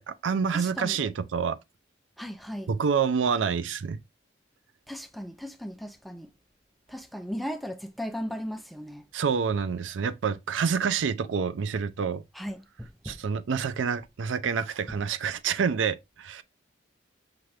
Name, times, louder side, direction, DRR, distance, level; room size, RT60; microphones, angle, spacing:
voice 1, 0.0-1.6 2.7-4.0 9.1-12.2 13.0-16.4, right 6 dB, 85° right, 0.4 m, -27 dB
voice 2, 0.5-1.0 2.2-2.7 4.9-6.3 6.9-9.0 12.3-13.2, equal, ahead, 0.4 m, -37 dB
5.8 x 2.5 x 3.2 m
head